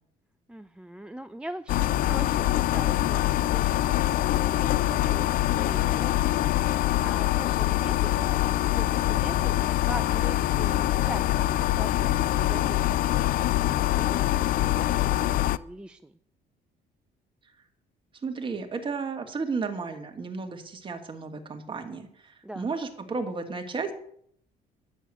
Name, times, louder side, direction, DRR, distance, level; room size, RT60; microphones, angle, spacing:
voice 1, 0.5-6.4 7.0-16.2 22.4-22.7, right 1 dB, 5° right, 9 dB, 0.4 m, -42 dB
sound 1, 1.7-15.6, left 14 dB, 55° left, 0.4 m, -24 dB
voice 2, 18.2-23.9, right 4 dB, 30° right, 5 dB, 1.9 m, -33 dB
10.5 x 7.2 x 7.6 m, 0.67 s
cardioid pair, 110°, 17 cm